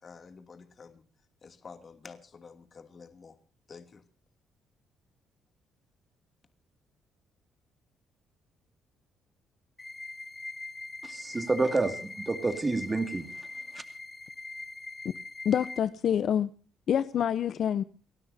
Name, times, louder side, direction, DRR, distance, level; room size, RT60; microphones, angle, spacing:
voice 1, 0.0-1.0 1.4-3.3 3.7-4.0, left 5 dB, 40° left, 2.7 m, -49 dB
sound 1, 9.8-15.8, left 3 dB, 20° left, 1.6 m, -42 dB
voice 2, 11.0-13.5 13.7-13.8, right 3 dB, 25° right, 2.3 m, -29 dB
voice 3, 15.4-16.5 16.9-17.8, left 9 dB, 55° left, 0.8 m, -26 dB
30.0 x 13.0 x 2.8 m
cardioid pair, 110°, 0 cm